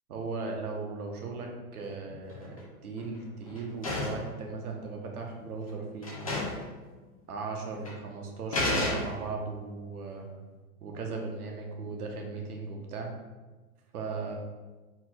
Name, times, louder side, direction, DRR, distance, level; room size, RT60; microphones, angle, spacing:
voice 1, 0.1-6.1 7.3-10.3 10.8-13.1 13.9-14.3, right 4 dB, 80° right, 1 dB, 1.1 m, -37 dB
sound 1, 2.1-2.6 3.0-4.3 5.2-5.3 5.7-5.8 6.0-6.7 7.0-7.1 7.9-8.0 8.5-9.4, left 2 dB, 25° left, 0.4 m, -32 dB
4.3 x 4.2 x 2.3 m, 1.2 s
hypercardioid pair, 175°, 44 cm